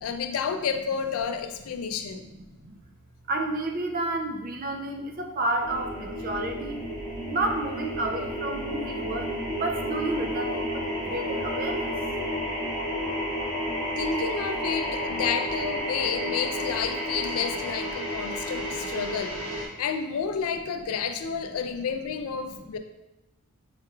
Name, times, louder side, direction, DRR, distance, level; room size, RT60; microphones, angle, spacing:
voice 1, 0.0-2.3 14.0-22.8, left 6 dB, 70° left, 8 dB, 0.4 m, -30 dB
voice 2, 1.8-2.8 3.3-6.8 7.3-12.1 18.3-18.8 19.2-19.3, right 2 dB, 40° right, 4 dB, 0.4 m, -31 dB
sound 1, 5.6-19.7, equal, 90° right, 1.1 m, -31 dB
5.7 x 3.0 x 2.3 m, 0.95 s
head